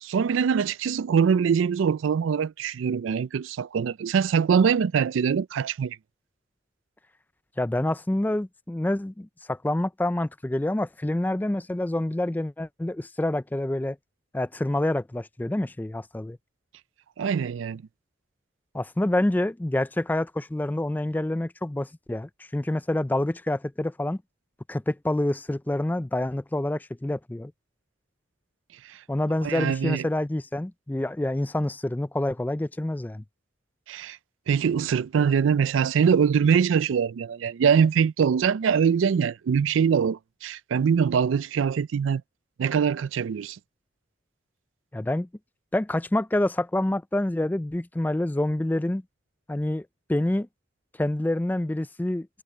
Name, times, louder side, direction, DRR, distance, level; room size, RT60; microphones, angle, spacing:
voice 1, 0.0-6.0 17.2-17.8 28.9-29.0 29.4-30.0 33.9-34.2 34.5-42.2 42.6-43.6, right 6 dB, 85° right, 0.4 m, -23 dB
voice 2, 7.6-14.0 14.3-16.4 18.7-24.2 24.7-27.5 29.1-33.2 44.9-45.3 45.7-49.0 49.5-50.5 51.0-52.3, left 1 dB, 10° left, 0.3 m, -27 dB
head